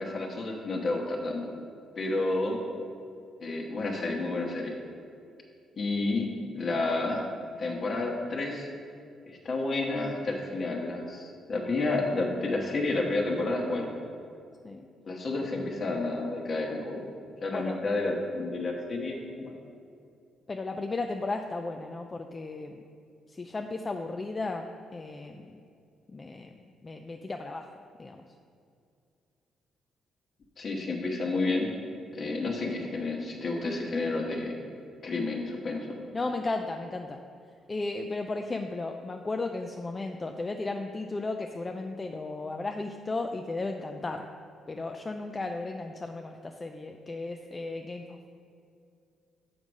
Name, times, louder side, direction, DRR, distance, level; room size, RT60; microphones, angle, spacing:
voice 1, 0.0-1.5 2.0-2.6 3.4-4.7 5.8-7.2 7.6-8.7 9.3-13.9 15.1-17.1 17.4-19.5 30.6-31.7 32.1-34.6 35.0-35.9, left 2 dB, 50° left, 1 dB, 1.2 m, -30 dB
voice 2, 20.5-22.8 23.3-25.5 26.1-26.5 26.8-27.6 28.0-28.2 32.2-32.4 36.1-37.2 37.7-44.3 44.7-48.2, left 3 dB, 25° left, 5 dB, 0.4 m, -35 dB
7.2 x 4.8 x 5.2 m, 2.4 s
cardioid pair, 90°, 0 cm